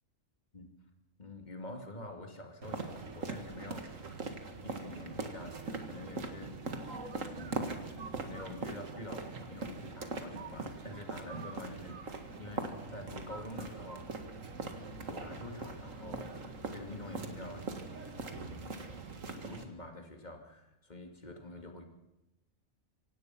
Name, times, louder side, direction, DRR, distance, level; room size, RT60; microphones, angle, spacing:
voice 1, 1.2-3.9 4.6-6.8 7.0-12.0 12.4-14.1 15.0-17.7 18.3-19.1 19.4-21.8, left 2 dB, 35° left, 4 dB, 2.6 m, -47 dB
sound 1, 2.6-19.6, right 3 dB, 80° right, 2.2 m, -41 dB
25.5 x 17.5 x 5.9 m, 0.95 s
omnidirectional pair, 1.3 m